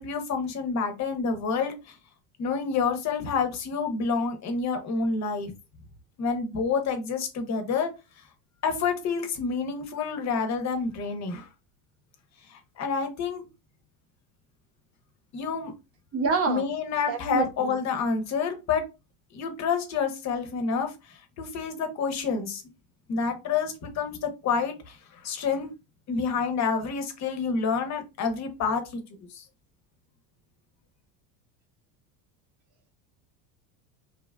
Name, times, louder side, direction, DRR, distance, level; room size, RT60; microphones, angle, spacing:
voice 1, 0.0-1.9 2.4-5.5 6.2-7.9 8.6-11.5 12.5-13.4 15.3-15.7 16.5-18.8 19.3-22.6 23.1-25.7 26.1-29.0 29.3-29.4, left 5 dB, 35° left, 0.8 m, -28 dB
voice 2, 16.1-16.6 17.1-17.7, right 4 dB, 30° right, 0.7 m, -27 dB
2.8 x 2.4 x 2.2 m
supercardioid pair, 110°, 45 cm